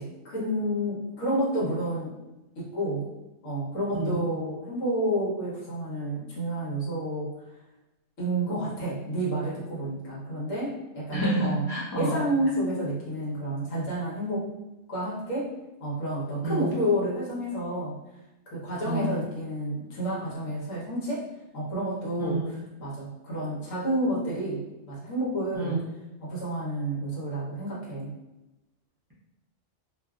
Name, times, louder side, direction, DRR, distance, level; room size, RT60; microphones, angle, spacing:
voice 1, 0.0-2.2 2.6-3.1 3.4-7.3 8.2-11.7 12.0-14.5 14.9-15.5 15.8-18.0 18.5-21.2 21.5-25.8 26.2-28.1, right 1 dB, 75° left, -6 dB, 1.3 m, -30 dB
voice 2, 11.1-12.2 16.4-16.7 18.9-19.1 22.2-22.5 25.5-25.8, right 1 dB, 25° right, -8 dB, 0.6 m, -28 dB
2.6 x 2.5 x 2.3 m, 0.98 s
omnidirectional pair, 1.3 m